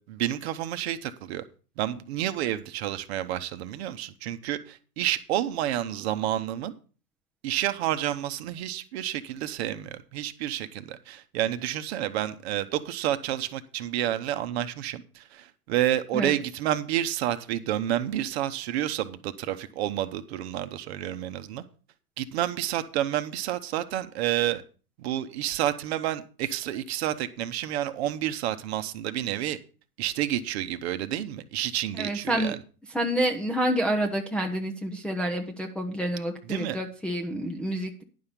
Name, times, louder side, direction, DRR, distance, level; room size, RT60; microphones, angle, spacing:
voice 1, 0.1-1.4 1.8-6.7 7.4-21.6 22.2-24.6 25.0-29.6 30.0-32.6 36.5-36.8, right 12 dB, 45° right, 10 dB, 1.0 m, -29 dB
voice 2, 32.0-32.5 32.9-38.0, right 1 dB, ahead, 0 dB, 0.7 m, -28 dB
10.5 x 5.7 x 6.7 m, 0.38 s
hypercardioid pair, 120°, 45 cm